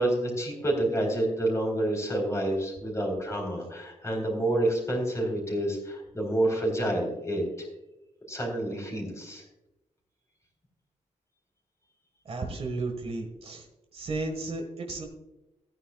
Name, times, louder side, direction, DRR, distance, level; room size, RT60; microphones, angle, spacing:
voice 1, 0.0-7.7 8.3-9.4, right 1 dB, 20° left, 0 dB, 3.9 m, -28 dB
voice 2, 12.2-13.7 13.9-15.1, right 3 dB, 50° right, 3 dB, 1.6 m, -33 dB
15.5 x 9.4 x 2.4 m, 0.96 s
wide cardioid pair, 140°, 13 cm